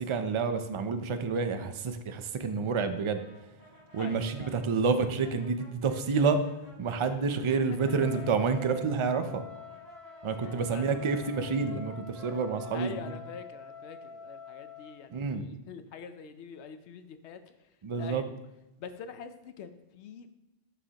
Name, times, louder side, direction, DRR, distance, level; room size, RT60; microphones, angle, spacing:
voice 1, 0.0-3.2 3.9-6.4 6.8-9.4 10.2-13.1 15.1-15.4 17.8-18.2, right 5 dB, 45° right, 9 dB, 0.4 m, -29 dB
Brass instrument, 3.1-8.9 9.5-14.2, left 2 dB, 20° left, 2.3 m, -55 dB
voice 2, 4.0-4.6 8.1-8.2 10.3-11.2 11.4-11.6 12.7-18.3 18.8-20.3, left 7 dB, 75° left, 10 dB, 0.9 m, -45 dB
Trumpet, 7.8-15.1, left 6 dB, ahead, 1.4 m, -47 dB
11.0 x 4.9 x 2.9 m, 0.89 s
omnidirectional pair, 1.2 m